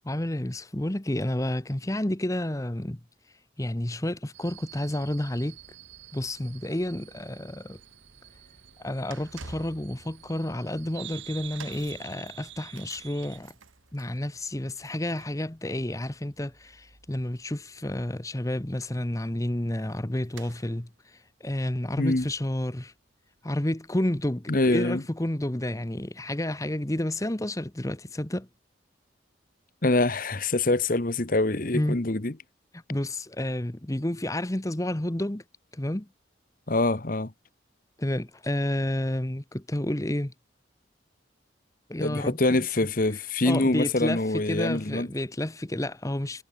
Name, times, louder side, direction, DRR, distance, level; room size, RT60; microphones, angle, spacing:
voice 1, 0.0-3.0 3.6-5.6 6.1-7.8 8.8-13.5 13.9-22.9 23.4-28.5 31.7-32.0 32.7-35.4 35.7-36.1 38.0-40.3 41.9-42.6 43.4-46.4, left 1 dB, 15° left, 0.9 m, -30 dB
sound 1, 4.3-13.4, right 12 dB, 70° right, 2.1 m, -48 dB
sound 2, 8.0-24.4 24.6-24.9 25.7-25.8, right 3 dB, 90° right, 2.9 m, -53 dB
voice 2, 22.0-22.3 24.5-25.0 29.8-32.4 36.7-37.3 42.0-45.1, left 2 dB, 45° left, 1.2 m, -25 dB
head